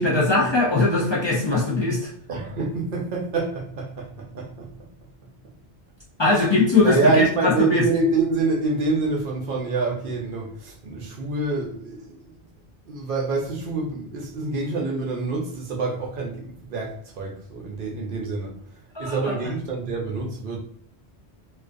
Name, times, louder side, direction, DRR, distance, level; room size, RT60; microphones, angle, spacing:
voice 1, 0.0-2.1 6.2-7.8 18.9-19.1, left 3 dB, 45° left, 0.3 m, -20 dB
voice 2, 2.3-4.9 6.3-6.4 6.8-12.3 12.8-18.6 19.0-20.6, right 3 dB, 60° right, 0.6 m, -26 dB
2.4 x 2.3 x 2.5 m
omnidirectional pair, 1.1 m